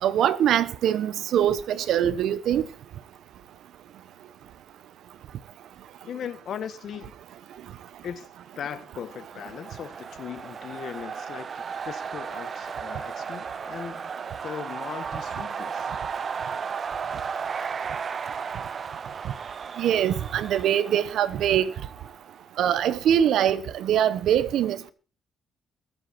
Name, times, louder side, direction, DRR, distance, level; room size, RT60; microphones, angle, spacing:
voice 1, 0.0-2.6 19.8-21.7 22.6-24.9, right 10 dB, 75° right, 1.1 m, -23 dB
voice 2, 6.0-7.1 8.0-8.3 8.5-14.1 14.4-15.9, left 8 dB, 65° left, 1.5 m, -38 dB
sound 1, 8.7-22.5, right 6 dB, 45° right, 0.8 m, -35 dB
23.0 x 8.2 x 4.4 m
cardioid pair, 90°, 0 cm